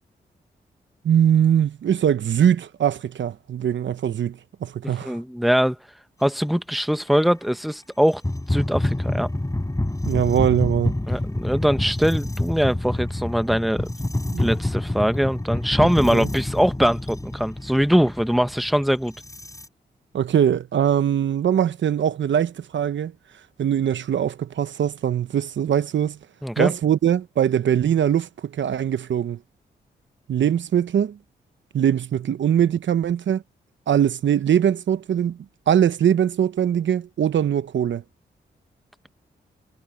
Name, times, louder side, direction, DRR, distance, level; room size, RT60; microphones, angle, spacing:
voice 1, 1.0-5.2 10.1-10.9 14.3-14.5 16.1-16.3 20.1-23.1 23.6-26.2 26.6-29.4 30.3-31.2 31.7-33.4 33.9-35.4 35.7-38.0, right 9 dB, 70° right, 1.0 m, -21 dB
voice 2, 5.0-5.8 6.2-8.2 8.5-9.3 11.1-13.9 14.4-19.1 26.4-26.7, equal, ahead, 1.4 m, -22 dB
sound 1, 7.1-7.2 8.1-19.7, left 1 dB, 15° left, 6.9 m, -27 dB
supercardioid pair, 45°, 20 cm